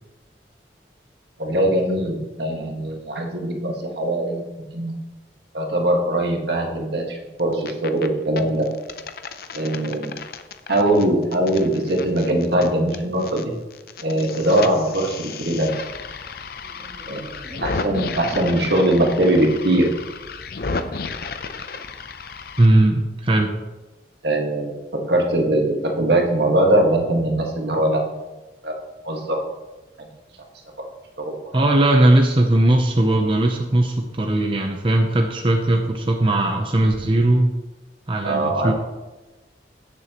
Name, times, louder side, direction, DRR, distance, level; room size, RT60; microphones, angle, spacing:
voice 1, 1.4-4.4 4.7-4.9 5.5-8.7 9.5-10.2 10.7-13.5 14.0-15.8 17.1-17.2 17.6-19.9 24.2-24.8 25.1-28.0 28.6-28.7 29.0-29.4 30.0-30.1 31.2-31.7 38.2-38.7, right 1 dB, 70° right, 1 dB, 1.7 m, -21 dB
sound 1, 7.4-8.1 8.4-13.4 13.7-22.7, left 4 dB, 55° left, 0.6 m, -33 dB
voice 2, 16.8-17.7 22.6-23.5 31.5-37.5 38.1-38.7, right 1 dB, 30° right, 3 dB, 0.6 m, -19 dB
15.5 x 6.9 x 3.0 m, 1.1 s
head